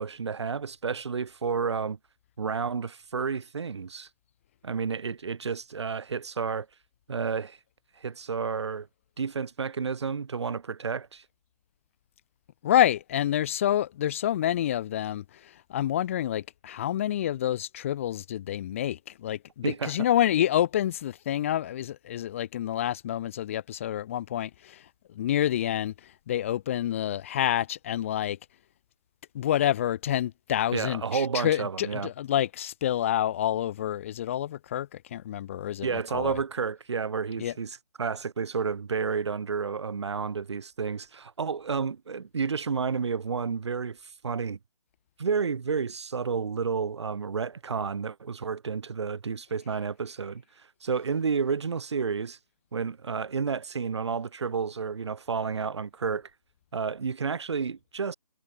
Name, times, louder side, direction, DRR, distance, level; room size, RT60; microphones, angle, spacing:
voice 1, 0.0-2.0 2.4-4.1 4.6-6.7 7.1-7.6 8.0-8.9 9.2-11.2 19.6-20.1 30.7-32.1 35.8-44.6 45.2-50.4 50.8-52.4 52.7-56.3 56.7-58.1, right 5 dB, 45° right, 4.2 m, -31 dB
voice 2, 12.6-24.8 25.2-25.9 26.3-28.4 29.3-36.4 37.4-37.5, left 11 dB, 20° left, 2.5 m, -28 dB
figure-of-eight pair, 165°, 21 cm